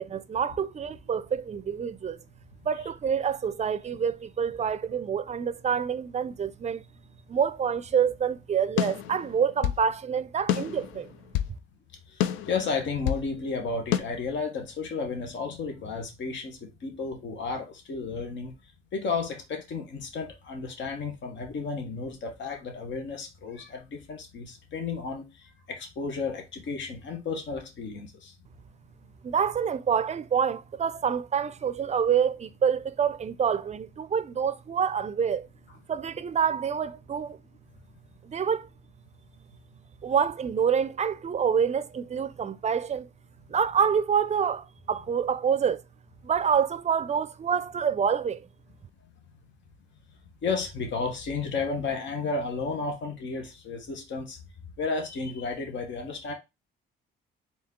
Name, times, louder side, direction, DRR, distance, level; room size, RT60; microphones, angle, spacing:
voice 1, 0.0-2.2 2.6-6.8 7.3-11.1 29.2-35.5 35.9-37.4 38.2-38.7 40.0-43.1 43.5-45.8 46.2-48.5, right 7 dB, 35° right, 0.4 m, -27 dB
sound 1, 8.8-9.8 10.5-11.6 12.2-13.3 13.9-14.0, left 11 dB, 85° left, 0.5 m, -28 dB
voice 2, 12.5-18.5 18.9-25.3 25.7-28.3 50.4-54.4 54.8-56.3, left 4 dB, 65° left, 1.2 m, -32 dB
4.2 x 2.8 x 3.7 m
cardioid pair, 90°, 20 cm